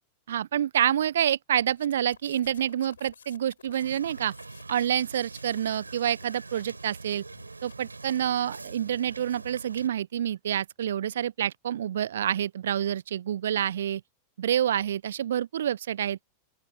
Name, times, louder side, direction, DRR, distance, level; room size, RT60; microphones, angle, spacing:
voice 1, 0.3-4.3 4.7-7.2 7.6-14.0 14.4-16.2, right 10 dB, 65° right, 0.5 m, -27 dB
sound 1, 1.7-8.7, left 7 dB, 70° left, 6.1 m, -55 dB
Wind / Boat Water vehicle, 3.8-9.9, right 3 dB, 80° right, 4.0 m, -44 dB
open air
figure-of-eight pair, 90°, 0 cm